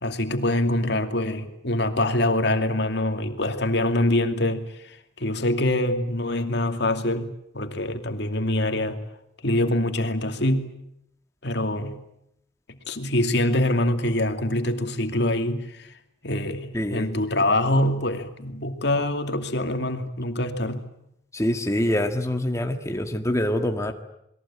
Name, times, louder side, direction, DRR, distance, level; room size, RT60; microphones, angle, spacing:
voice 1, 0.0-9.0 9.4-10.7 11.4-12.0 12.7-15.9 16.2-20.9, left 1 dB, 65° left, 2.5 m, -25 dB
voice 2, 16.7-17.1 21.3-23.9, left 1 dB, 15° left, 1.8 m, -25 dB
28.5 x 22.0 x 8.7 m
head